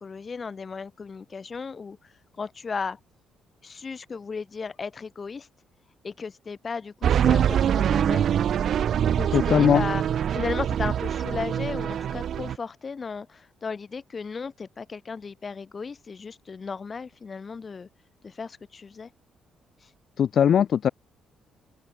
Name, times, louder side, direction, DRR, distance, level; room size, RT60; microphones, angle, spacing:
voice 1, 0.0-3.0 3.6-5.5 6.0-8.3 9.1-10.0 10.3-17.9 18.2-19.1 19.8-19.9, left 5 dB, 35° left, 7.7 m, -35 dB
sound 1, 7.0-12.6, right 9 dB, 60° right, 1.2 m, -24 dB
voice 2, 9.3-9.8 20.2-20.9, left 8 dB, 55° left, 0.4 m, -20 dB
cardioid pair, 115°, 0 cm